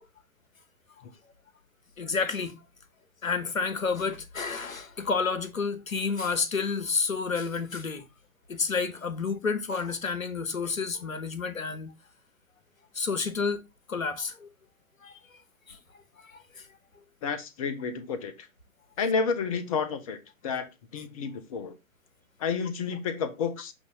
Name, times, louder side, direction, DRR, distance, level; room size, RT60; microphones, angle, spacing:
voice 1, 2.0-2.5 3.2-8.0 8.5-11.9 12.9-13.6 13.9-14.5 15.0-15.2 15.7-15.8 16.2-16.6, left 5 dB, 70° left, 1.1 m, -30 dB
voice 2, 17.2-18.5 19.0-21.8 22.4-23.7, left 5 dB, 25° left, 0.6 m, -31 dB
7.1 x 2.7 x 4.9 m
figure-of-eight pair, 115°, 42 cm